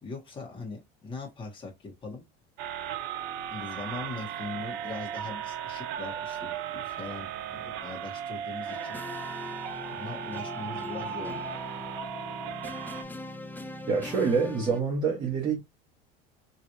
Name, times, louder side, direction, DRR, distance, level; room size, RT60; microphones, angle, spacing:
voice 1, 0.0-2.2 3.5-9.0 9.9-11.4 12.9-13.0, left 3 dB, 25° left, 1.6 m, -41 dB
sound 1, 2.6-13.0, right 9 dB, 70° right, 0.7 m, -36 dB
sound 2, 8.7-14.8, left 2 dB, 10° left, 0.4 m, -41 dB
voice 2, 13.9-15.6, right 5 dB, 25° right, 1.1 m, -26 dB
3.1 x 3.1 x 2.7 m
cardioid pair, 130°, 19 cm